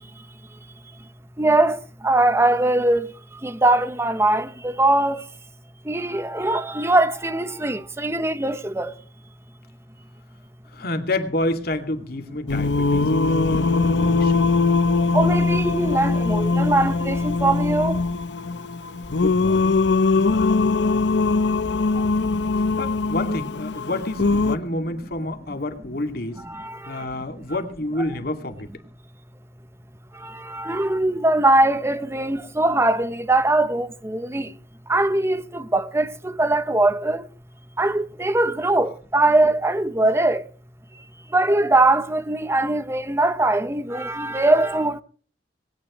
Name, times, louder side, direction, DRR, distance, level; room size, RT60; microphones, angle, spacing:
voice 1, 1.4-3.1 3.4-5.2 5.9-8.9 15.1-18.0 26.4-27.0 30.2-34.5 34.9-37.3 37.8-40.4 41.3-45.0, right 2 dB, 15° right, 0.8 m, -21 dB
voice 2, 10.7-14.5 19.1-19.7 22.8-26.4 26.9-28.7, left 1 dB, 55° left, 2.4 m, -29 dB
Singing, 12.5-24.6, left 3 dB, 70° left, 0.7 m, -21 dB
20.0 x 17.0 x 3.2 m
head